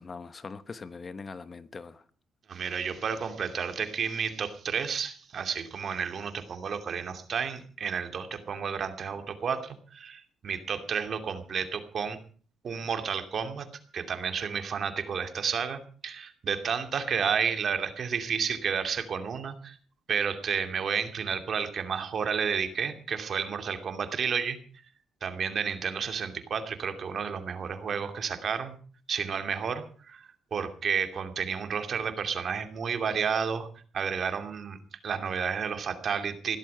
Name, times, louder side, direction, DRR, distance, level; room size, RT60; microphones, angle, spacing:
voice 1, 0.0-2.0, left 4 dB, 35° left, 1.1 m, -42 dB
voice 2, 2.5-12.2 12.6-13.7 13.9-19.7 20.1-24.6 25.2-28.8 29.1-33.7 33.9-34.8 35.0-36.6, right 6 dB, 55° right, 2.6 m, -31 dB
16.0 x 12.5 x 5.7 m
cardioid pair, 90°, 0 cm